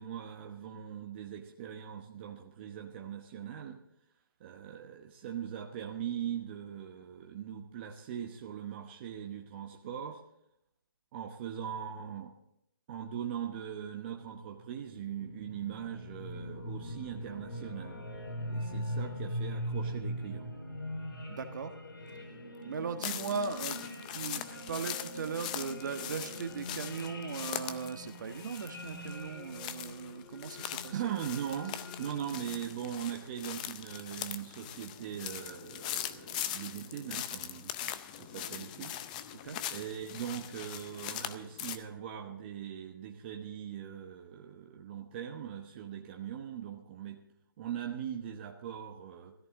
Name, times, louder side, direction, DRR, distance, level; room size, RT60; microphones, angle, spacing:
voice 1, 0.0-3.8 4.4-10.2 11.1-12.3 12.9-18.0 18.5-20.5 30.9-39.0 39.7-47.2 47.6-49.3, right 9 dB, 30° right, 1 dB, 1.0 m, -40 dB
sound 1, 14.4-32.8, equal, 75° left, 3.7 m, -42 dB
voice 2, 21.3-21.7 22.6-31.0 39.4-39.6, right 5 dB, 55° right, 7 dB, 1.4 m, -38 dB
sound 2, 23.0-41.8, left 11 dB, 20° left, 0.5 m, -41 dB
16.0 x 14.0 x 3.7 m, 0.80 s
hypercardioid pair, 155°, 12 cm